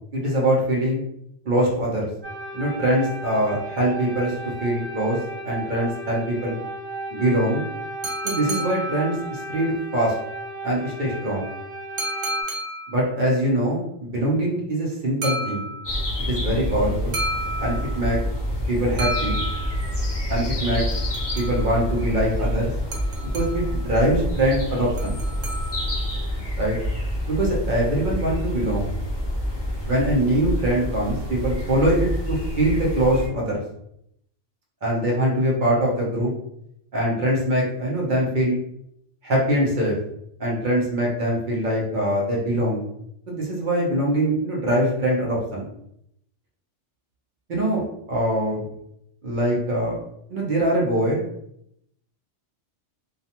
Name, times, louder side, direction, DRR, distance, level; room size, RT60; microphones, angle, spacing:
voice 1, 0.1-1.0 1.4-2.1 2.5-4.4 4.6-5.2 5.4-6.5 7.1-7.6 8.2-10.2 10.6-11.5 12.9-15.7 16.2-17.2 17.6-18.2 18.7-19.4 20.3-20.8 21.4-22.7 23.3-25.2 26.6-26.8 27.3-28.9 29.8-33.6 34.8-36.3 36.9-38.6 39.2-39.9 40.4-42.8 43.3-45.7 47.5-48.6 49.2-50.0 50.3-51.2, right 1 dB, 50° right, -4 dB, 0.7 m, -23 dB
sound 1, 2.2-12.4, right 1 dB, 10° right, 0.8 m, -35 dB
sound 2, 8.0-9.5 12.0-13.1 15.2-16.1 17.1-18.2 19.0-20.0 20.9-21.9 22.9-23.8 25.0-26.1, right 1 dB, 90° right, 1.0 m, -31 dB
sound 3, 15.8-33.3, equal, 25° left, 0.6 m, -27 dB
2.4 x 2.2 x 2.8 m, 0.75 s
omnidirectional pair, 1.2 m